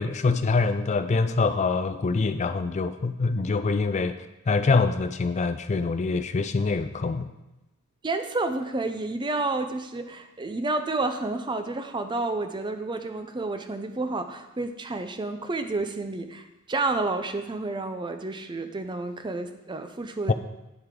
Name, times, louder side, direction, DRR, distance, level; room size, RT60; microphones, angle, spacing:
voice 1, 0.0-4.2 4.5-7.3 20.3-20.4, left 4 dB, 30° left, 10 dB, 0.4 m, -25 dB
voice 2, 8.0-20.3, right 2 dB, 20° right, 8 dB, 0.5 m, -30 dB
9.3 x 7.8 x 3.7 m, 0.97 s
head